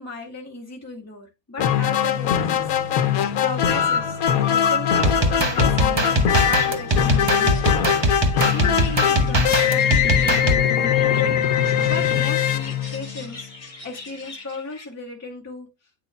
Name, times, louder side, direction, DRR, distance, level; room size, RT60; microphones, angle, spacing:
voice 1, 0.0-3.0 3.4-4.2 4.5-7.7 8.4-11.4 11.8-15.7, left 2 dB, 10° left, 2.1 m, -35 dB
sound 1, 1.6-13.4, left 9 dB, 90° left, 1.1 m, -21 dB
sound 2, 5.0-10.6, right 1 dB, 20° right, 0.8 m, -21 dB
sound 3, 6.6-14.9, left 4 dB, 35° left, 1.4 m, -41 dB
9.2 x 6.1 x 2.2 m
omnidirectional pair, 1.5 m